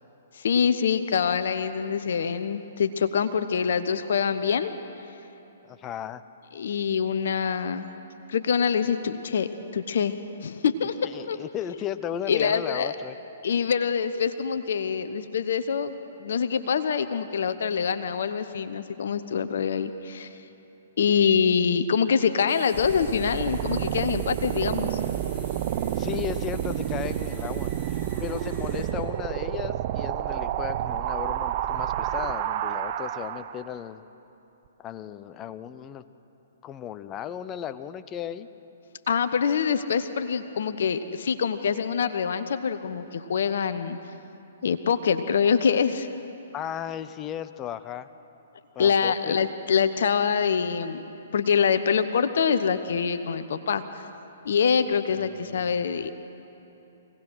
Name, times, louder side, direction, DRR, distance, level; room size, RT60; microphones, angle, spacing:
voice 1, 0.3-4.7 6.5-7.9 8.3-10.1 10.4-11.4 12.3-12.9 13.4-15.9 16.2-20.3 21.0-25.0 39.1-44.0 44.6-46.1 48.8-51.0 51.3-53.8 54.4-56.1, left 6 dB, 65° left, 11 dB, 0.9 m, -25 dB
voice 2, 5.7-6.2 11.0-13.2 26.0-34.0 34.8-36.0 36.6-38.5 46.5-48.1 48.7-49.4 55.2-55.8, left 10 dB, 25° left, 12 dB, 0.7 m, -35 dB
sound 1, 22.5-28.9, right 1 dB, 5° right, 4.0 m, -49 dB
sound 2, 22.7-33.7, right 11 dB, 45° right, 0.7 m, -29 dB
24.5 x 18.0 x 6.3 m, 3.0 s
figure-of-eight pair, 125°, 0 cm